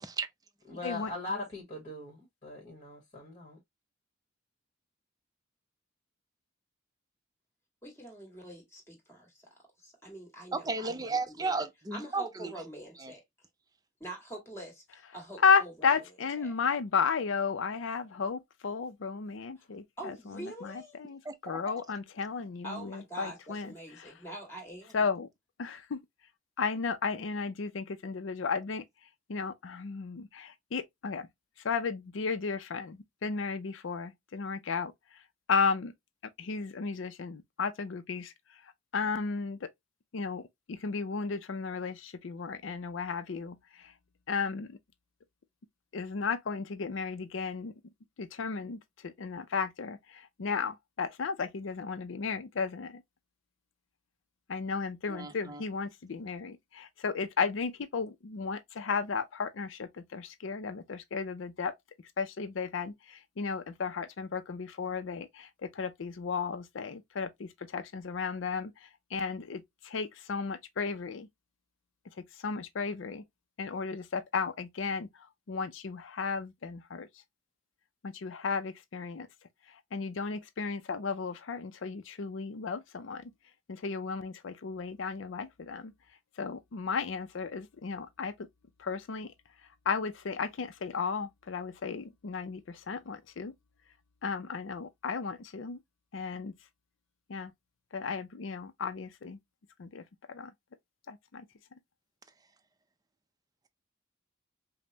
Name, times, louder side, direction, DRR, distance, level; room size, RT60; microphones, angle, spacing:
voice 1, 0.7-3.6, left 2 dB, 30° left, 1.4 m, -40 dB
voice 2, 7.8-9.4 9.8-11.6 11.9-13.2 14.0-15.9 16.4-16.6 20.0-21.0 22.6-25.0, right 1 dB, 15° left, 1.8 m, -45 dB
voice 3, 10.5-12.5 13.0-13.1 21.2-21.6 55.1-55.6, right 3 dB, 20° right, 0.5 m, -34 dB
voice 4, 15.4-24.1 24.9-25.3 25.6-26.0 26.6-28.8 29.3-31.3 31.6-34.9 35.5-35.9 36.4-39.7 40.1-43.9 44.3-44.8 45.9-47.7 48.2-53.0 54.5-61.7 62.2-71.3 72.4-73.2 73.6-77.1 78.0-79.3 79.7-83.3 83.7-85.9 86.4-88.5 88.8-89.3 89.9-93.5 94.2-95.8 96.1-96.5 97.3-97.5 97.9-99.4 99.8-100.0 100.3-100.5 101.1-101.4, left 5 dB, 65° left, 0.5 m, -34 dB
5.2 x 2.1 x 2.7 m
head